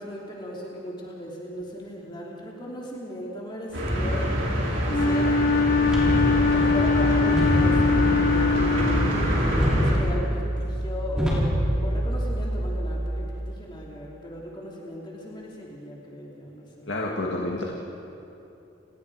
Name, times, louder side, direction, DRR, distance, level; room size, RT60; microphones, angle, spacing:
voice 1, 0.0-4.4 4.9-5.4 6.2-9.2 9.7-17.0, left 1 dB, 25° left, -3 dB, 3.0 m, -37 dB
sound 1, 3.7-9.9, equal, 85° right, 6.0 m, -25 dB
Wind instrument woodwind instrument, 4.9-9.6, left 4 dB, 45° left, 0.6 m, -23 dB
sound 2, 5.8-13.2, equal, 5° right, 5.9 m, -27 dB
voice 2, 16.9-17.6, left 2 dB, 70° left, -2 dB, 2.1 m, -29 dB
30.0 x 19.5 x 4.9 m, 2.8 s
head